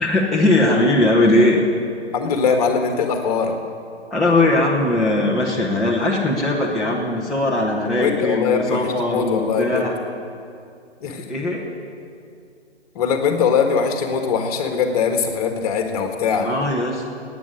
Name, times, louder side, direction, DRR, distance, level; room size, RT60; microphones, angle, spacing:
voice 1, 0.0-1.7 4.1-9.9 11.0-11.6 16.4-17.0, left 1 dB, ahead, -7 dB, 0.7 m, -19 dB
voice 2, 2.1-3.5 8.0-9.9 11.0-11.2 12.9-16.5, left 6 dB, 35° left, 5 dB, 1.7 m, -21 dB
13.5 x 9.1 x 9.5 m, 2.4 s
figure-of-eight pair, 135°, 34 cm